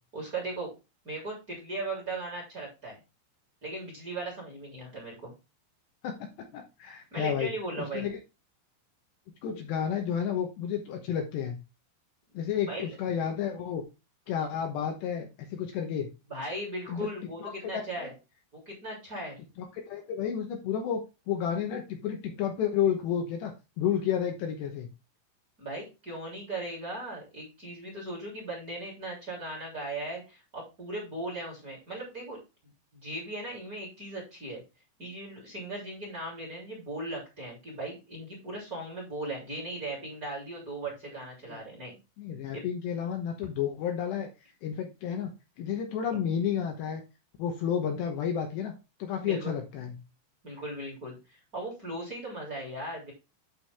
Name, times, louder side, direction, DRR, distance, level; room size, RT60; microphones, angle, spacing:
voice 1, 0.1-0.7 1.0-3.0 3.6-5.3 7.1-8.1 12.7-13.0 16.3-18.1 18.6-19.4 25.6-32.4 32.9-34.6 35.0-41.9 42.5-42.6 49.2-49.5 50.4-53.1, right 2 dB, 20° right, -1 dB, 3.1 m, -38 dB
voice 2, 6.5-7.5 7.8-8.2 9.4-11.6 12.3-13.8 14.3-16.1 16.9-17.1 17.4-18.1 19.9-24.9 41.5-41.6 42.2-44.3 44.6-45.3 45.6-47.0 47.4-48.7 49.0-49.9, left 8 dB, 75° left, 3 dB, 2.9 m, -31 dB
11.5 x 4.8 x 3.5 m, 0.27 s
omnidirectional pair, 5.7 m